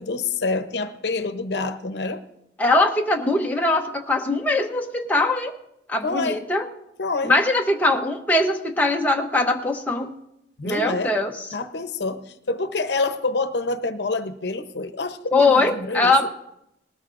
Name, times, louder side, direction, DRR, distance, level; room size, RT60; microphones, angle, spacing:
voice 1, 0.0-2.2 6.0-6.4 7.0-7.3 10.6-11.1 11.5-16.3, left 3 dB, 70° left, 9 dB, 0.8 m, -27 dB
voice 2, 2.6-5.5 5.9-6.6 7.2-10.1 10.6-11.5 15.3-16.3, left 2 dB, 10° left, 1 dB, 0.8 m, -21 dB
19.0 x 13.0 x 2.5 m, 0.83 s
head